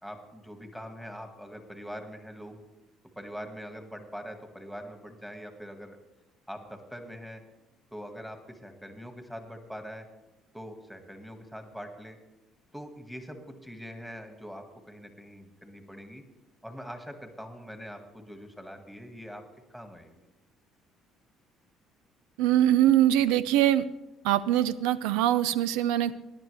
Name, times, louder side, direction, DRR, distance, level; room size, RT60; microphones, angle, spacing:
voice 1, 0.0-2.6 3.2-6.0 6.5-7.4 7.9-10.1 10.5-12.2 12.7-16.2 16.6-19.4 19.7-20.3, equal, ahead, 5 dB, 1.9 m, -43 dB
voice 2, 22.4-23.8 24.2-26.2, right 12 dB, 90° right, 16 dB, 0.4 m, -23 dB
18.5 x 10.5 x 3.4 m, 0.99 s
supercardioid pair, 90°, 0 cm